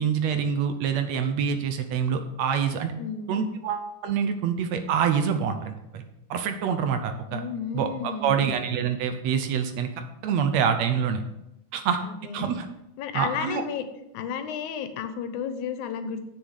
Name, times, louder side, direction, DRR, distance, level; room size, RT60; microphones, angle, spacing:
voice 1, 0.0-2.9 3.3-6.1 6.3-7.4 7.7-9.9 10.2-11.2 11.7-12.0 12.3-12.7 13.1-13.6, right 7 dB, 70° right, 8 dB, 1.8 m, -26 dB
voice 2, 3.0-3.4 7.3-8.5 12.0-12.5 13.0-13.8 14.1-16.3, left 7 dB, 80° left, 9 dB, 2.2 m, -33 dB
7.9 x 6.6 x 6.5 m, 0.87 s
omnidirectional pair, 3.5 m